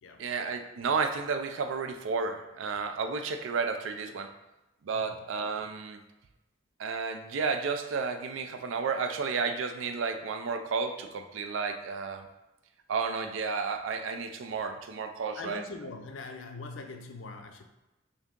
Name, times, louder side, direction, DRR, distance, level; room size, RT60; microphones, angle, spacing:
voice 1, 0.2-4.3 4.8-6.0 6.8-12.3 12.9-15.6, right 5 dB, 85° right, 7 dB, 0.4 m, -32 dB
voice 2, 4.9-5.2 15.4-17.6, left 3 dB, 75° left, 6 dB, 0.4 m, -42 dB
3.5 x 2.7 x 3.6 m, 0.99 s
head